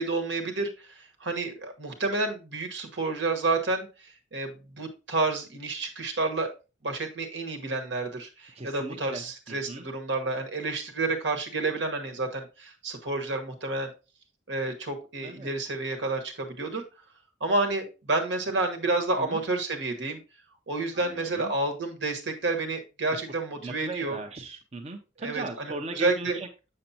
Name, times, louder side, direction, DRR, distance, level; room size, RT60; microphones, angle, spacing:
voice 1, 0.0-3.9 4.3-6.5 6.8-13.9 14.5-16.8 17.4-20.2 20.7-24.2 25.2-26.4, right 3 dB, 75° right, 5 dB, 1.3 m, -30 dB
voice 2, 8.5-9.8 15.2-15.5 19.2-19.4 20.9-21.5 23.6-26.5, right 2 dB, 35° right, 3 dB, 0.7 m, -38 dB
6.9 x 6.5 x 2.8 m, 0.30 s
head